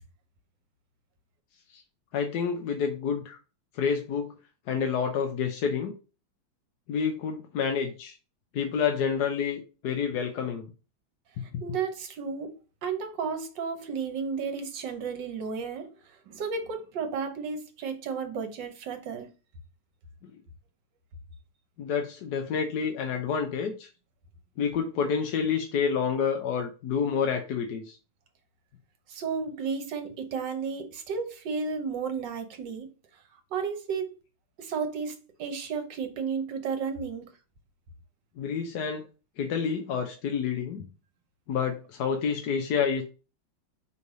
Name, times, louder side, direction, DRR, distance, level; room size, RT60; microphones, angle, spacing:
voice 1, 2.1-3.4 3.8-4.3 4.7-5.9 6.9-8.1 8.5-10.7 21.8-23.9 24.6-28.0 38.4-39.0 39.4-40.8 41.5-43.0, left 6 dB, 60° left, 1.2 m, -28 dB
voice 2, 11.6-12.5 12.8-19.3 29.1-32.9 33.5-34.2 34.6-37.3, right 5 dB, 65° right, 1.5 m, -33 dB
5.5 x 3.2 x 5.2 m
omnidirectional pair, 2.2 m